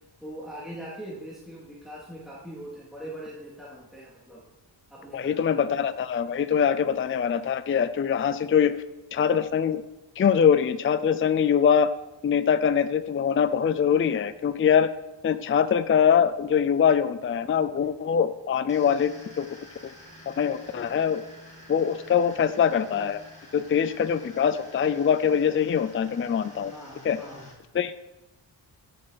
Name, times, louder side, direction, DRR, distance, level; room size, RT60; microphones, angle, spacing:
voice 1, 0.2-4.4 4.9-5.6 26.7-27.5, right 1 dB, ahead, -7 dB, 2.4 m, -41 dB
voice 2, 5.1-8.7 9.1-9.8 10.2-11.9 12.2-14.9 15.2-19.1 19.4-19.5 20.3-21.2 21.7-23.2 23.5-26.7 27.0-27.2 27.7-27.9, left 7 dB, 30° left, 12 dB, 0.4 m, -23 dB
sound 1, 18.7-27.5, left 1 dB, 15° left, 2.6 m, -49 dB
15.0 x 7.7 x 4.0 m, 0.96 s
wide cardioid pair, 165°, 45 cm